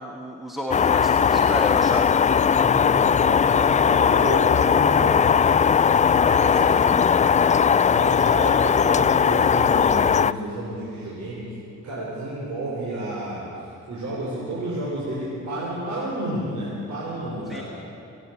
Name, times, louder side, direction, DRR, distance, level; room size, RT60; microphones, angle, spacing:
voice 1, 0.0-2.2 17.5-17.6, left 1 dB, ahead, 1 dB, 1.5 m, -32 dB
sound 1, 0.7-10.3, left 7 dB, 25° left, 0.4 m, -18 dB
voice 2, 2.5-5.5 6.1-6.8 7.9-11.6 11.8-13.5 13.9-17.6, right 1 dB, 70° right, -6 dB, 5.0 m, -31 dB
29.0 x 10.5 x 8.4 m, 2.7 s
cardioid pair, 90°, 30 cm